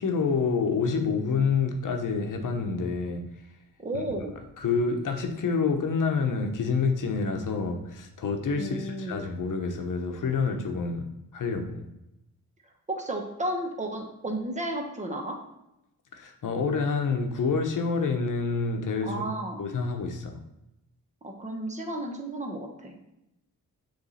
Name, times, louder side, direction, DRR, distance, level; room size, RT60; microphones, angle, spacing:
voice 1, 0.0-3.2 4.6-11.1 11.3-11.8 16.1-19.2 19.6-20.4, left 5 dB, 60° left, 5 dB, 1.0 m, -27 dB
voice 2, 3.8-4.3 8.6-9.2 12.9-15.4 19.0-19.6 21.2-23.0, right 1 dB, 20° right, 3 dB, 1.2 m, -33 dB
6.9 x 3.4 x 4.2 m, 0.88 s
supercardioid pair, 55°, 36 cm